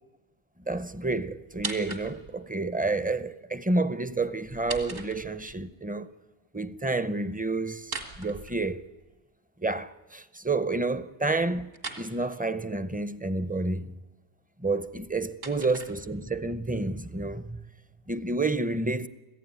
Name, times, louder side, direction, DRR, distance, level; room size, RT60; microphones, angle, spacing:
voice 1, 0.7-6.1 6.5-8.9 9.6-13.9 14.6-17.6 18.1-19.1, right 2 dB, 10° right, 0.4 m, -29 dB
sound 1, 1.5-2.4 4.4-5.6 7.8-9.1 11.7-12.1 14.8-16.4, right 3 dB, 75° right, 2.5 m, -40 dB
26.0 x 15.5 x 9.4 m
omnidirectional pair, 1.2 m